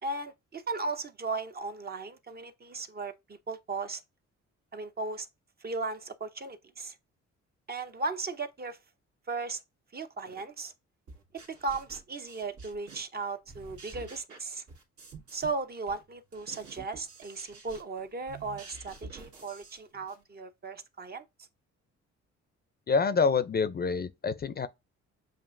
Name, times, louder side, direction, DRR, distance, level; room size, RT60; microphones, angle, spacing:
voice 1, 0.0-4.0 4.7-5.3 5.6-7.0 7.7-8.8 9.3-9.6 9.9-10.7 11.5-14.6 15.3-21.2, right 3 dB, 30° right, 0.6 m, -36 dB
sound 1, 11.1-13.2 13.5-15.6 15.9-20.2, right 4 dB, 75° right, 1.8 m, -49 dB
voice 2, 22.9-24.7, left 5 dB, 30° left, 0.5 m, -27 dB
7.5 x 2.5 x 2.5 m
cardioid pair, 90°, 30 cm